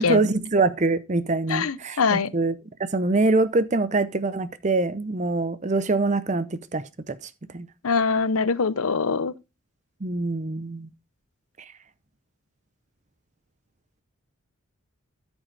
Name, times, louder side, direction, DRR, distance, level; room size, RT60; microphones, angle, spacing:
voice 1, 0.0-2.5 2.9-7.2 7.5-7.7 10.0-10.9 11.6-11.7, right 3 dB, 35° right, 0.6 m, -24 dB
voice 2, 1.5-2.3 7.8-9.3, left 5 dB, 90° left, 0.7 m, -23 dB
13.5 x 6.3 x 3.3 m
head